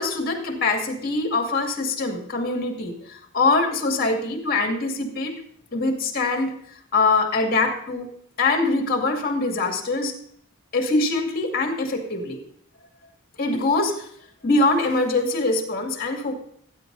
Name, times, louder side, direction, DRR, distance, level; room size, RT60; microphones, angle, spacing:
voice 1, 0.0-5.4 5.7-6.5 6.9-8.1 8.4-10.1 10.7-12.4 13.4-14.1 14.4-16.3, left 3 dB, 45° left, 2 dB, 2.4 m, -23 dB
19.0 x 9.7 x 2.7 m, 0.64 s
head